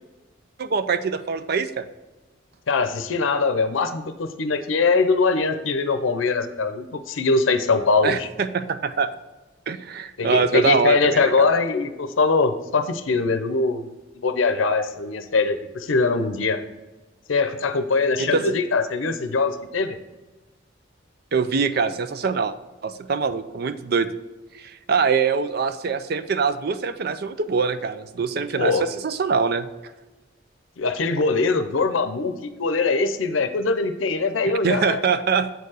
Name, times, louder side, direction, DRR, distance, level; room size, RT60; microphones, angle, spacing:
voice 1, 0.6-1.8 8.0-9.1 9.7-11.5 18.2-18.4 21.3-22.5 22.8-24.1 24.6-29.7 34.6-35.5, right 5 dB, 55° right, 12 dB, 0.5 m, -23 dB
voice 2, 2.7-8.3 10.2-13.9 14.2-16.6 17.3-20.0 28.6-28.9 30.8-35.0, left 4 dB, 90° left, 9 dB, 0.6 m, -22 dB
7.9 x 4.5 x 4.8 m, 1.2 s
head